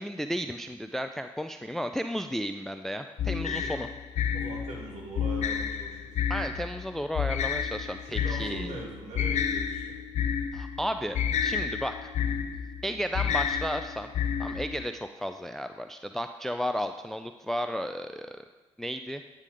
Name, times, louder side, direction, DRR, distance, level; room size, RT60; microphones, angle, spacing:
voice 1, 0.0-3.9 6.3-8.7 10.5-12.1 12.8-14.1 14.4-18.4 18.8-19.2, equal, ahead, 8 dB, 0.3 m, -33 dB
sound 1, 3.2-14.9, left 7 dB, 50° left, 0.6 m, -30 dB
voice 2, 4.3-6.1 8.0-9.8, right 2 dB, 50° right, -2 dB, 2.6 m, -41 dB
9.8 x 3.8 x 5.1 m, 1.3 s
figure-of-eight pair, 45°, 15 cm